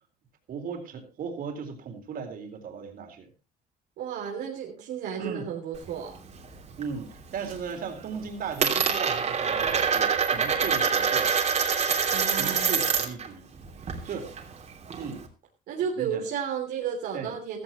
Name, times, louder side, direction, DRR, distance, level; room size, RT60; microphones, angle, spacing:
voice 1, 0.5-3.3 5.2-5.5 6.8-11.3 11.9-13.5 14.0-14.4 15.0-15.3 16.0-16.2 17.1-17.3, right 6 dB, 55° right, 5 dB, 4.0 m, -37 dB
voice 2, 4.0-6.2 12.1-12.8 15.7-17.6, right 7 dB, 80° right, 0 dB, 3.1 m, -33 dB
Coin (dropping), 5.7-6.9 7.2-7.7 8.0-13.3 13.6-15.2, right 6 dB, 40° right, 3.1 m, -26 dB
15.5 x 14.5 x 3.1 m, 0.29 s
cardioid pair, 110°, 17 cm